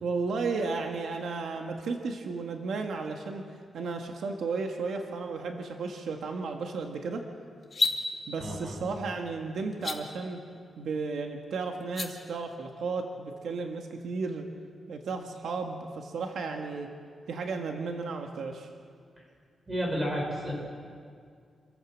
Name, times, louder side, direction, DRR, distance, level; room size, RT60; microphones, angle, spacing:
voice 1, 0.0-3.5 3.7-7.2 8.3-10.4 10.8-14.5 14.9-16.9 17.3-18.7, right 4 dB, 90° right, 3 dB, 1.5 m, -34 dB
sound 1, 7.6-8.0 9.7-10.0 11.8-12.1, left 4 dB, 30° left, 1.6 m, -27 dB
voice 2, 8.4-8.7 19.7-20.5, equal, 20° right, -1 dB, 5.2 m, -31 dB
27.0 x 14.0 x 7.4 m, 2.2 s
wide cardioid pair, 175°, 0 cm